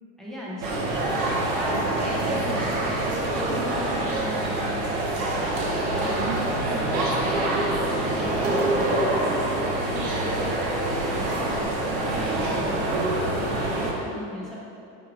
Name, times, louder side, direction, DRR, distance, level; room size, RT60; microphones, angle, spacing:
voice 1, 0.2-1.1 1.5-4.9 5.3-11.6 11.9-14.6, equal, ahead, -7 dB, 0.7 m, -38 dB
sound 1, 0.6-13.9, right 1 dB, 60° right, 1.1 m, -25 dB
sound 2, 4.0-4.5 6.9-7.4 9.9-10.5, right 2 dB, 85° right, 1.3 m, -41 dB
4.9 x 4.5 x 4.8 m, 2.6 s
cardioid pair, 155°, 32 cm